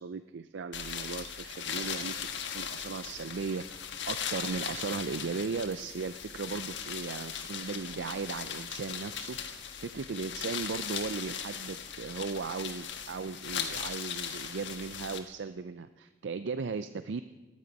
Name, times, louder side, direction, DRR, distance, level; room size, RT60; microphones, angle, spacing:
voice 1, 0.0-2.3 2.5-17.2, right 4 dB, 80° right, 11 dB, 0.5 m, -37 dB
sound 1, 0.7-15.2, left 7 dB, 85° left, 1.4 m, -38 dB
23.5 x 9.6 x 5.4 m, 1.3 s
head